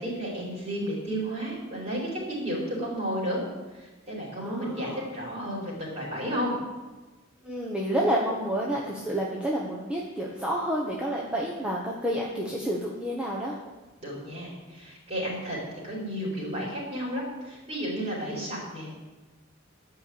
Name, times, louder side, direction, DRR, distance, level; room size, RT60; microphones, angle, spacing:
voice 1, 0.0-3.4 3.7-6.5 14.0-18.9, equal, 30° right, -5 dB, 4.7 m, -32 dB
voice 2, 4.4-5.0 7.4-13.5, right 1 dB, 5° right, -4 dB, 1.1 m, -29 dB
11.5 x 5.7 x 8.6 m, 1.2 s
head